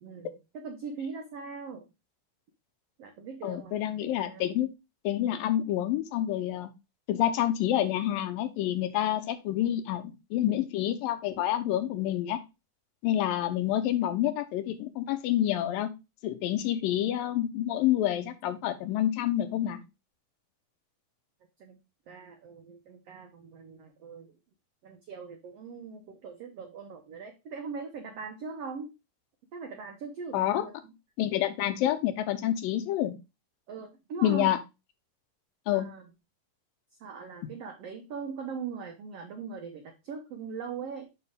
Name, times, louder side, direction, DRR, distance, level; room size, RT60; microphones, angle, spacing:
voice 1, 0.0-1.8 3.0-4.5 21.6-21.8 22.1-24.3 24.8-28.9 29.5-30.9 33.7-34.5 35.7-36.0 37.0-41.1, right 5 dB, 75° right, 4 dB, 1.4 m, -41 dB
voice 2, 3.4-4.7 5.0-6.7 7.1-12.4 13.0-15.9 16.2-19.8 30.3-30.7 31.2-33.1 34.2-34.6 35.7-35.9, left 12 dB, 80° left, 10 dB, 2.5 m, -28 dB
7.0 x 5.5 x 3.5 m, 0.25 s
omnidirectional pair, 4.1 m